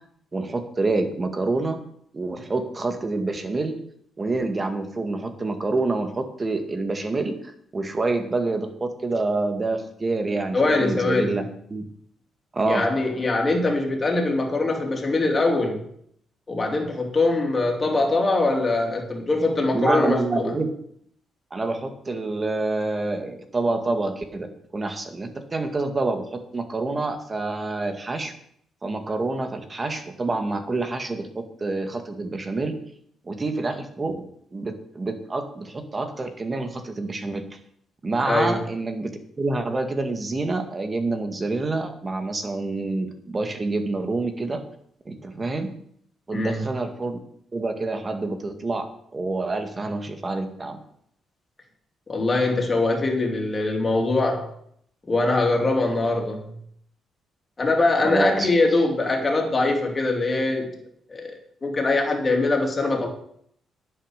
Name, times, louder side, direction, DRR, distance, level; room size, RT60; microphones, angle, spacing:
voice 1, 0.3-1.8 2.1-3.8 4.2-7.4 7.7-11.9 12.5-12.9 19.7-20.7 21.5-26.2 26.5-28.3 28.8-32.8 33.3-34.2 34.5-37.5 38.0-39.1 39.4-44.6 45.1-45.7 46.3-47.2 47.5-48.9 49.1-50.8 58.0-58.5, right 3 dB, 30° right, 7 dB, 2.0 m, -27 dB
voice 2, 10.5-11.4 12.7-15.8 16.5-20.5 38.3-38.6 46.3-46.7 52.1-54.5 55.1-56.5 57.6-60.7 61.1-61.3 61.6-63.1, left 2 dB, 30° left, 1 dB, 3.5 m, -22 dB
10.0 x 8.6 x 6.7 m, 0.67 s
cardioid pair, 90°, 0 cm